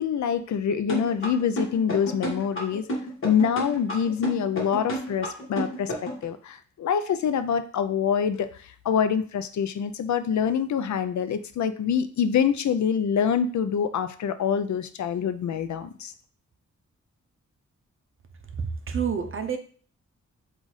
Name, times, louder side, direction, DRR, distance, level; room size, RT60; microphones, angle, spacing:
voice 1, 0.0-2.8 3.2-5.9 6.2-8.5 8.8-16.1, left 7 dB, 65° left, 11 dB, 0.4 m, -25 dB
sound 1, 0.9-6.2, right 1 dB, 40° left, 1.3 m, -30 dB
voice 2, 18.6-19.6, right 6 dB, 45° right, 7 dB, 0.5 m, -28 dB
4.0 x 2.5 x 4.7 m, 0.43 s
wide cardioid pair, 155°, 30 cm